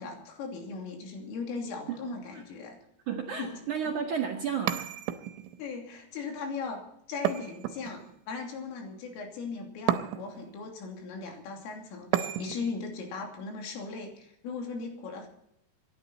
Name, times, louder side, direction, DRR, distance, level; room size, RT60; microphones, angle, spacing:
voice 1, 0.0-2.8 3.4-3.6 5.6-15.3, left 4 dB, 85° left, 2 dB, 5.6 m, -38 dB
voice 2, 1.9-2.4 3.1-4.9, right 7 dB, 60° right, 0 dB, 2.2 m, -33 dB
sound 1, 4.7-5.6 7.3-8.2 9.9-10.5 12.1-12.8, right 11 dB, 85° right, 3.4 m, -32 dB
26.0 x 11.5 x 4.2 m, 0.75 s
omnidirectional pair, 5.6 m